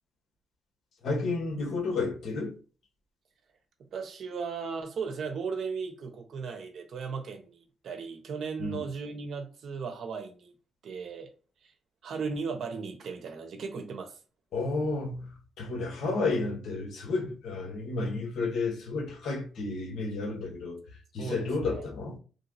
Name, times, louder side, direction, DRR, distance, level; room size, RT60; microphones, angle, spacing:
voice 1, 1.0-2.6 8.6-8.8 14.5-20.8 21.1-22.2, left 3 dB, 65° left, 1.1 m, -31 dB
voice 2, 3.9-10.5 10.8-11.3 11.6-11.7 12.0-14.2 21.2-21.9, right 5 dB, 60° right, 0.9 m, -36 dB
3.3 x 2.8 x 2.7 m
cardioid pair, 90°, 0 cm